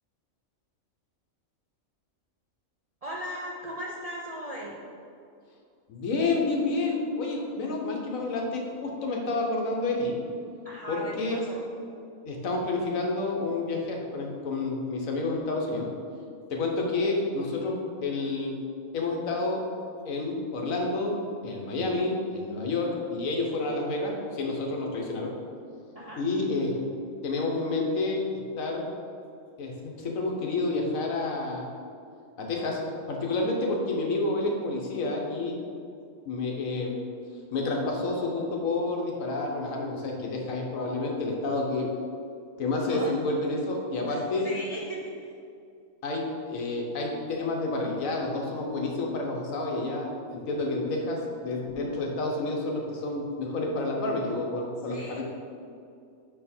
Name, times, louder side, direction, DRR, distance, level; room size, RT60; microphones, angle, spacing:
voice 1, 3.0-4.8 10.6-11.7 25.9-26.2 42.9-43.1 44.0-45.3 54.9-55.2, equal, 50° right, -4 dB, 0.4 m, -38 dB
voice 2, 5.9-10.2 10.9-11.4 12.3-15.9 16.5-17.8 18.0-18.5 18.9-19.6 20.0-21.1 21.4-25.3 26.2-26.8 27.2-28.2 28.6-28.8 29.6-31.7 32.4-32.8 33.1-35.6 36.3-37.0 37.5-41.9 42.6-44.5 46.0-55.2, left 2 dB, 75° left, 0 dB, 1.3 m, -29 dB
5.9 x 4.5 x 4.3 m, 2.4 s
omnidirectional pair, 1.4 m